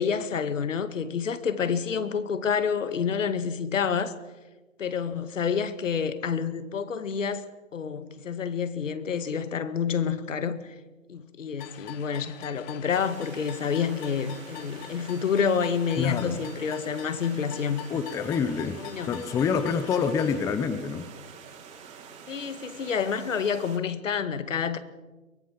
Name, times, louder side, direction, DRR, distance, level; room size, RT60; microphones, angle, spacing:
voice 1, 0.0-4.2 4.8-10.8 11.1-17.8 18.8-19.2 22.3-24.8, left 6 dB, 70° left, 2.1 m, -28 dB
sound 1, 11.6-20.4, left 12 dB, 25° left, 1.5 m, -45 dB
Stream, 12.9-23.8, right 6 dB, 15° right, 3.2 m, -47 dB
voice 2, 16.0-16.4 17.9-21.1, left 6 dB, 10° left, 0.7 m, -27 dB
23.5 x 18.0 x 7.5 m
hypercardioid pair, 140°, 40 cm